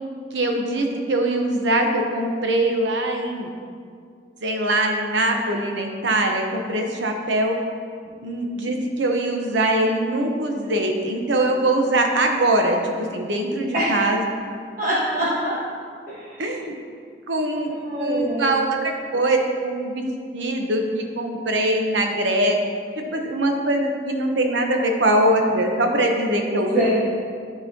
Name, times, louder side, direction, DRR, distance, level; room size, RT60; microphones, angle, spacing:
voice 1, 0.3-3.5 4.4-7.6 8.2-14.2 16.4-16.7 17.3-17.7 18.0-19.4 19.6-22.6 23.1-26.9, right 1 dB, 80° right, 3 dB, 0.8 m, -22 dB
voice 2, 14.8-15.6 16.1-16.4 17.7-18.5 26.7-26.9, right 1 dB, 45° right, -11 dB, 1.3 m, -24 dB
11.5 x 4.0 x 2.8 m, 2.1 s
head